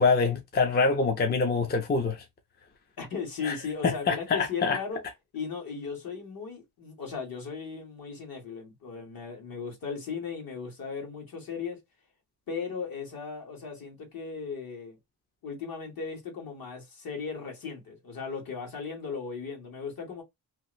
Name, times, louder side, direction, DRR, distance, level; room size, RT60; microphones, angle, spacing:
voice 1, 0.0-2.2 3.4-3.6 3.8-4.8, left 4 dB, 25° left, 0.4 m, -25 dB
voice 2, 3.0-5.0 5.3-11.8 12.5-15.0 15.4-20.2, left 5 dB, 60° left, 1.5 m, -37 dB
2.8 x 2.5 x 3.0 m
wide cardioid pair, 175°, 39 cm